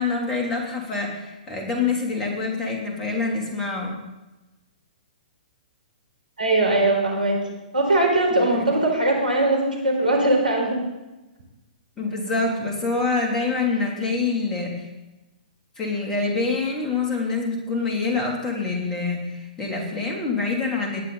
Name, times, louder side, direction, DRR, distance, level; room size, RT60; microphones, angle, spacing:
voice 1, 0.0-3.9 8.3-8.7 12.0-14.9 15.8-21.0, left 4 dB, 15° left, -1 dB, 3.0 m, -26 dB
voice 2, 6.4-7.4 7.7-10.8, right 2 dB, 80° right, 0 dB, 4.6 m, -20 dB
18.0 x 11.0 x 4.0 m, 1.1 s
figure-of-eight pair, 120°, 5 cm